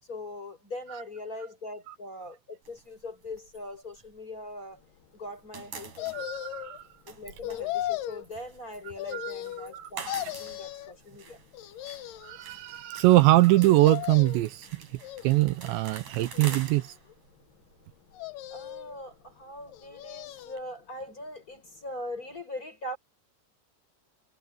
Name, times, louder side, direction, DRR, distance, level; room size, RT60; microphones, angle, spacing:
voice 1, 0.0-4.8 5.1-6.4 7.1-11.4 18.5-23.0, left 1 dB, 20° left, 5.5 m, -41 dB
sound 1, 2.6-4.9 5.2-20.6, right 5 dB, 45° right, 5.6 m, -47 dB
sound 2, 6.0-6.8 7.4-8.2 9.0-9.8 10.1-10.9 11.5-12.4 13.5-14.5 15.0-15.7 16.3-17.1 18.1-19.0 19.7-20.6 21.0-21.1, left 14 dB, 80° left, 1.9 m, -37 dB
voice 2, 6.1-6.8 9.1-9.3 9.6-9.9 12.2-14.8 15.2-16.9, right 17 dB, 80° right, 2.9 m, -23 dB
omnidirectional pair, 5.4 m